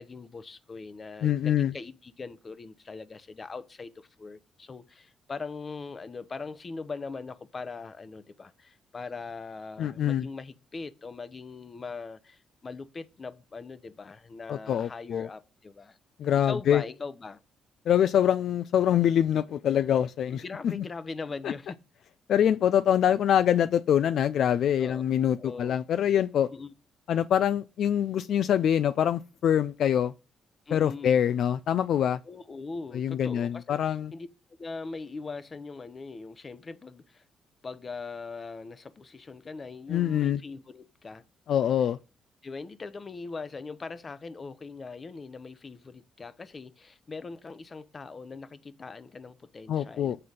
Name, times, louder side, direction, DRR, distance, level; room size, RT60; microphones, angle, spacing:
voice 1, 0.0-16.0 16.3-17.4 20.3-21.8 24.8-25.0 25.4-25.7 26.5-26.7 30.7-31.2 32.3-33.8 34.1-34.3 34.6-37.2 37.6-41.2 42.4-50.2, left 4 dB, 35° left, 0.8 m, -41 dB
voice 2, 1.2-1.7 9.8-10.3 14.5-15.3 16.2-16.8 17.9-20.8 21.4-21.5 22.3-26.5 27.1-30.1 30.7-32.2 32.9-34.1 39.9-40.4 41.5-42.0 49.7-50.2, left 9 dB, 70° left, 0.3 m, -25 dB
7.7 x 3.9 x 6.4 m
cardioid pair, 90°, 0 cm